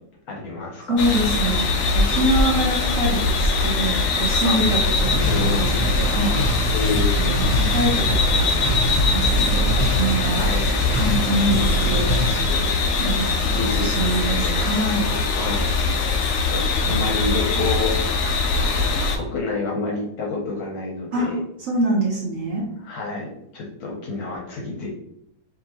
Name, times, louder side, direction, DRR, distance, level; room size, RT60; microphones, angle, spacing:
voice 1, 0.3-1.9 4.4-4.6 5.3-5.6 6.7-7.1 10.3-10.6 13.5-14.5 15.3-15.6 16.2-18.4 19.1-21.4 22.8-24.9, left 3 dB, 60° left, -1 dB, 1.1 m, -29 dB
voice 2, 0.9-1.6 1.9-6.3 7.2-8.5 8.7-10.4 10.9-12.7 13.0-15.1 21.1-21.3 21.6-22.6, right 1 dB, 55° right, -4 dB, 1.1 m, -25 dB
sound 1, 1.0-19.2, left 3 dB, 80° left, 0.7 m, -22 dB
sound 2, 4.9-12.3, right 1 dB, 20° right, 1.1 m, -24 dB
4.9 x 2.8 x 2.9 m, 0.74 s
omnidirectional pair, 2.1 m